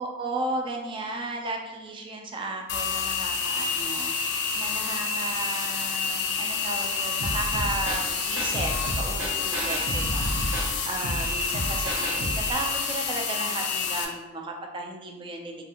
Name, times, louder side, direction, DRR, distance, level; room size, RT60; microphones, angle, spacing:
voice 1, 0.0-8.7 9.0-15.6, right 2 dB, 25° right, 2 dB, 0.3 m, -34 dB
sound 1, 2.7-14.1, left 5 dB, 60° left, 0.4 m, -29 dB
sound 2, 7.2-12.5, equal, 75° right, 0.7 m, -31 dB
3.4 x 2.4 x 2.8 m, 1.1 s
head